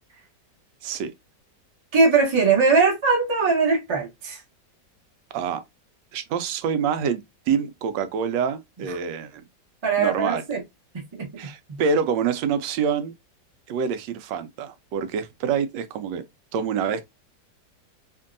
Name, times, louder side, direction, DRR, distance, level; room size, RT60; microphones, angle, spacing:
voice 1, 1.9-4.4 9.8-10.6 10.9-11.3 11.7-11.8, right 4 dB, 30° right, 0.6 m, -20 dB
voice 2, 6.1-9.4 10.0-10.4 11.4-13.1 13.7-16.2 16.5-17.0, right 6 dB, 85° right, 1.2 m, -26 dB
2.9 x 2.6 x 2.5 m
omnidirectional pair, 1.9 m